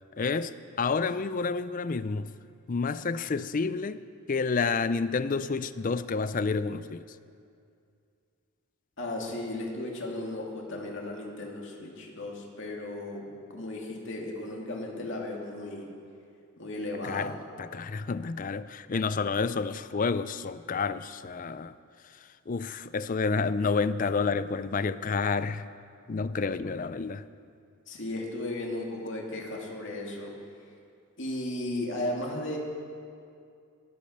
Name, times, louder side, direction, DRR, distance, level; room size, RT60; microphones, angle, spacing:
voice 1, 0.2-2.3 2.7-4.0 4.3-7.2 17.0-17.3 17.6-21.7 22.0-25.7 26.1-27.3, left 4 dB, 40° left, 0.4 m, -29 dB
voice 2, 9.0-15.9 16.6-17.3 27.9-30.3 31.2-32.6, left 1 dB, 55° left, 2.6 m, -35 dB
22.5 x 8.5 x 6.5 m
head